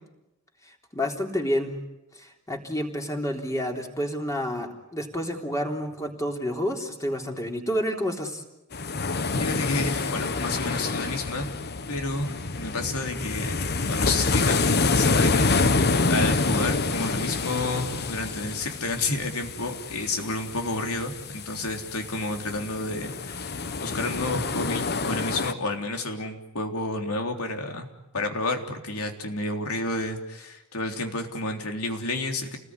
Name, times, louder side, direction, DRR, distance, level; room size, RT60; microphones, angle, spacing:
voice 1, 0.9-1.8 2.2-8.4, equal, 15° left, 2 dB, 3.6 m, -29 dB
sound 1, 8.7-25.5, left 3 dB, 45° left, 1.1 m, -27 dB
voice 2, 9.3-11.5 11.9-13.6 13.9-15.8 16.1-27.9 28.1-32.6, left 2 dB, 80° left, 4 dB, 3.5 m, -30 dB
30.0 x 20.0 x 9.8 m, 0.95 s
head